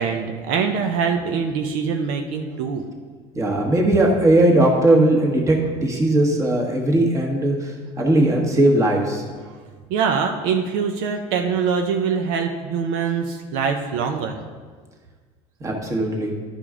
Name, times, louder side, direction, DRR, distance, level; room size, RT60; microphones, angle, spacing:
voice 1, 0.0-2.8 9.9-14.4, right 6 dB, 75° right, 4 dB, 0.7 m, -23 dB
voice 2, 3.3-9.2 15.6-16.3, right 1 dB, 20° right, 0 dB, 1.4 m, -18 dB
11.5 x 5.1 x 3.7 m, 1.5 s
cardioid pair, 130°, 14 cm